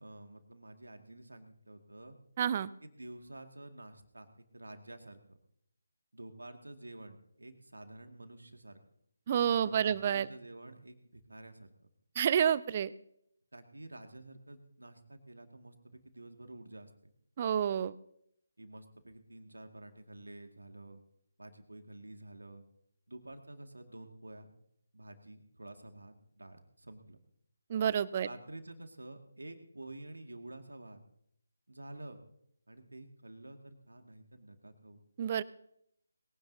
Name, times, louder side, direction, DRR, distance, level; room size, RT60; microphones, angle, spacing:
voice 1, 0.0-2.2 2.8-4.3 4.5-5.4 6.1-8.8 9.5-11.7 13.5-16.9 18.6-21.0 21.4-22.6 23.1-24.5 24.9-27.2 28.2-31.0 31.7-32.2 32.7-35.0, right 1 dB, 75° right, 5 dB, 2.0 m, -50 dB
voice 2, 2.4-2.7 9.3-10.3 12.2-12.9 17.4-17.9 27.7-28.3 35.2-35.4, right 9 dB, 30° right, 20 dB, 0.5 m, -29 dB
22.0 x 16.5 x 2.7 m, 0.74 s
figure-of-eight pair, 150°, 0 cm